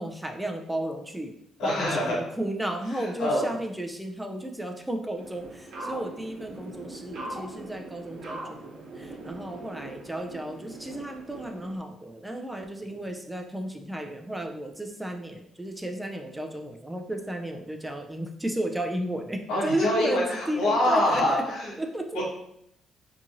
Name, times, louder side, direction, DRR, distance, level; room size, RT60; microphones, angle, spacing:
voice 1, 0.0-1.3 1.6-21.4 21.8-22.2, right 1 dB, 10° right, 4 dB, 0.3 m, -33 dB
voice 2, 1.6-2.2 2.9-3.5 12.9-13.0 19.5-21.7 22.1-22.2, left 1 dB, 90° left, -4 dB, 1.0 m, -25 dB
sound 1, 5.2-11.8, right 2 dB, 85° right, 0.8 m, -41 dB
2.8 x 2.4 x 2.6 m, 0.74 s
cardioid pair, 90°, 0 cm